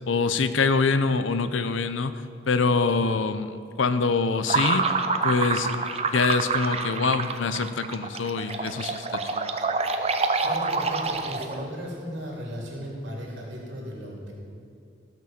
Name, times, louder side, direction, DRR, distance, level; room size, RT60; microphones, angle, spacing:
voice 1, 0.1-2.1 2.5-4.9 5.2-5.9 6.1-9.5, left 4 dB, 85° left, 12 dB, 0.6 m, -25 dB
sound 1, 4.5-11.7, right 4 dB, 30° right, 0.6 m, -27 dB
voice 2, 10.4-14.3, equal, 65° right, -3 dB, 3.4 m, -36 dB
15.5 x 6.1 x 7.6 m, 2.3 s
head